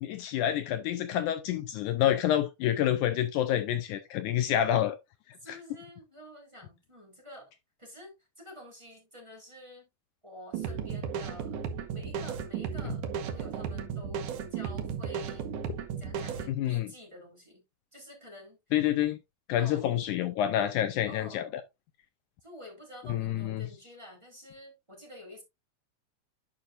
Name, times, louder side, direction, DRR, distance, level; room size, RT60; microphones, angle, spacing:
voice 1, 0.0-5.0 5.5-5.6 16.6-16.9 18.7-19.2 19.5-21.5 23.1-23.7, left 11 dB, 90° left, 1.7 m, -28 dB
voice 2, 5.4-7.5 7.8-9.9 10.2-11.6 11.9-15.5 16.0-17.6 17.9-18.6 19.5-19.9 21.1-21.6 22.4-25.4, left 1 dB, 10° right, 3.6 m, -49 dB
sound 1, 10.5-16.5, right 7 dB, 70° right, 2.1 m, -35 dB
11.5 x 5.6 x 2.5 m
omnidirectional pair, 4.3 m